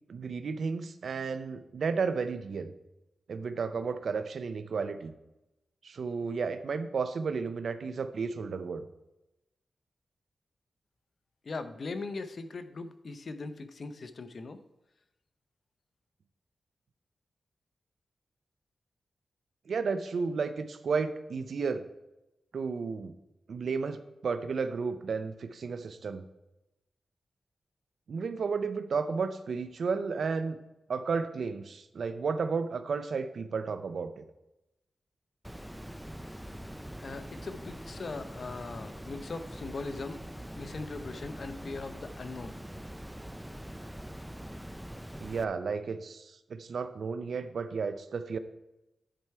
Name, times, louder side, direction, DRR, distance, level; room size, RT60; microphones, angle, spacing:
voice 1, 0.1-2.7 3.3-5.1 5.8-8.9 19.7-21.8 22.5-23.1 23.5-26.2 28.1-30.6 30.9-34.2 45.2-48.4, right 5 dB, 75° right, 11 dB, 0.5 m, -33 dB
voice 2, 11.4-14.6 37.0-40.2 40.5-42.6, left 3 dB, 60° left, 10 dB, 0.6 m, -40 dB
Water, 35.4-45.4, equal, 5° right, 0.5 m, -43 dB
10.0 x 4.7 x 4.5 m, 0.94 s
cardioid pair, 65°, 0 cm